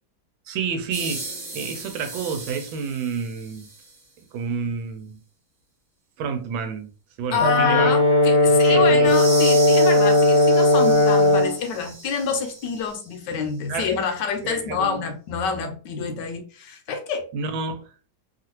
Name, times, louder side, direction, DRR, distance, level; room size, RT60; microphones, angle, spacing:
voice 1, 0.5-3.7 4.3-5.2 6.2-6.9 7.2-7.9 8.5-9.1 13.7-14.0 14.4-15.0 17.3-17.9, right 5 dB, 85° right, 1.4 m, -29 dB
sound 1, 0.9-4.0 9.0-13.1, right 2 dB, 40° right, 1.0 m, -36 dB
voice 2, 7.3-17.3, left 6 dB, 75° left, 1.1 m, -27 dB
Brass instrument, 7.4-11.6, left 1 dB, 50° left, 0.8 m, -17 dB
3.1 x 2.5 x 2.8 m
omnidirectional pair, 2.1 m